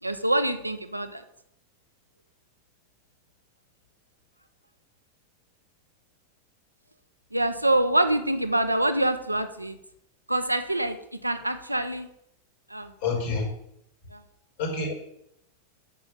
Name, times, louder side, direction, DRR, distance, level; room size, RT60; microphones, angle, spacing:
voice 1, 0.0-1.2 7.3-9.8 10.3-12.1 12.7-12.9 14.1-14.2, right 1 dB, 85° right, 8 dB, 0.9 m, -25 dB
voice 2, 13.0-13.5 14.6-14.9, left 4 dB, 55° left, 0 dB, 4.1 m, -27 dB
8.8 x 7.1 x 6.8 m, 0.77 s
figure-of-eight pair, 90°, 0 cm